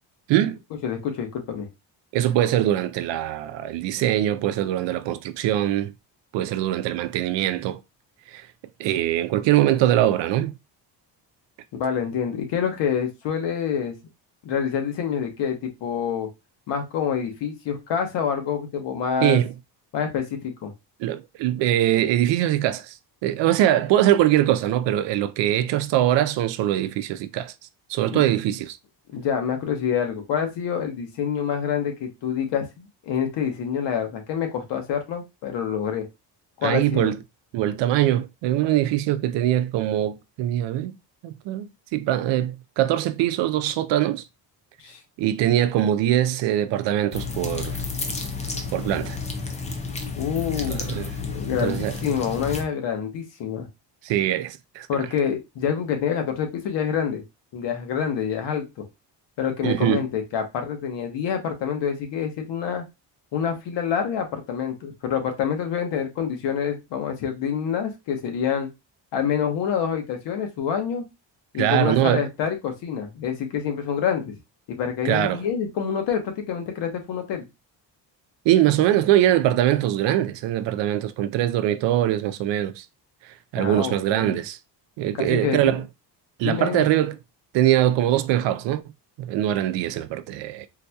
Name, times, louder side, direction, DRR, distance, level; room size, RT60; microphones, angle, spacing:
voice 1, 0.3-0.6 2.1-5.9 6.3-7.8 8.3-8.5 8.8-10.5 19.2-19.5 21.0-23.0 23.2-27.5 27.9-28.8 36.6-37.2 37.5-41.0 41.2-44.2 45.2-47.8 48.7-49.2 50.7-51.1 51.6-52.0 54.0-54.9 59.6-60.0 71.6-72.3 75.0-75.4 78.5-82.9 83.2-84.6 85.0-85.9 86.4-87.2 87.5-88.8 89.2-90.7, right 12 dB, 85° right, 0.5 m, -22 dB
voice 2, 0.8-1.7 11.8-13.9 14.4-16.3 16.7-19.4 19.9-20.7 28.1-28.2 29.1-36.1 36.6-37.1 44.8-45.0 50.1-53.7 54.9-57.2 57.5-58.8 59.4-62.8 63.3-68.7 69.1-71.0 71.5-74.3 74.7-77.4 83.5-84.4 85.2-85.7 86.4-86.9, left 7 dB, 80° left, 1.1 m, -27 dB
sound 1, 47.1-52.6, left 4 dB, 20° left, 0.3 m, -31 dB
3.9 x 2.8 x 2.2 m
cardioid pair, 175°, 42 cm